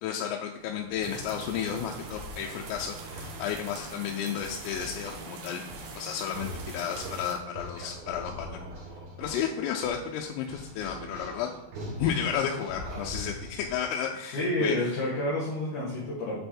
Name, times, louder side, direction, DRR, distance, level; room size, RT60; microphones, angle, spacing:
voice 1, 0.0-5.6 6.0-8.6 9.2-11.5 12.0-14.9, left 8 dB, 85° left, 1 dB, 3.3 m, -32 dB
sound 1, 0.6-13.7, equal, 55° right, 4.5 m, -43 dB
sound 2, 1.0-7.3, right 4 dB, 80° right, 2.1 m, -44 dB
voice 2, 14.3-16.4, left 1 dB, 60° left, -6 dB, 2.2 m, -29 dB
8.4 x 5.5 x 4.4 m, 0.85 s
omnidirectional pair, 5.9 m